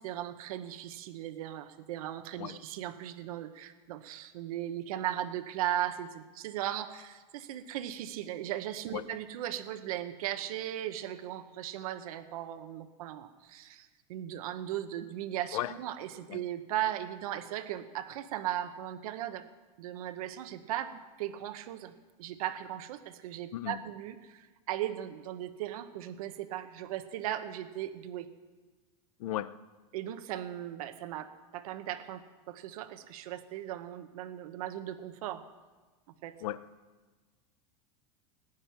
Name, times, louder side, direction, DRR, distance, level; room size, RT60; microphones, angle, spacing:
voice 1, 0.0-19.5 19.8-21.9 22.2-28.3 29.9-35.4 36.2-36.3, right 12 dB, 80° right, 9 dB, 1.1 m, -37 dB
voice 2, 29.2-29.6 36.4-36.6, left 14 dB, 80° left, 15 dB, 0.7 m, -35 dB
19.5 x 10.0 x 5.8 m, 1.3 s
supercardioid pair, 145°, 18 cm